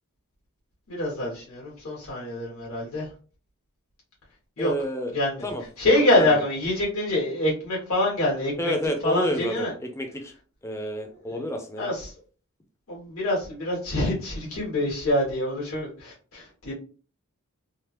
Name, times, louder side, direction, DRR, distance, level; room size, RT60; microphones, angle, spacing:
voice 1, 0.9-3.1 4.6-4.7 5.1-5.3 5.8-8.7 9.0-9.7 11.8-12.1 12.9-16.7, left 1 dB, 75° left, -5 dB, 1.3 m, -25 dB
voice 2, 4.6-5.1 5.4-6.4 8.6-10.3 10.6-11.9, equal, 15° left, 5 dB, 0.4 m, -30 dB
3.2 x 2.0 x 2.9 m, 0.39 s
head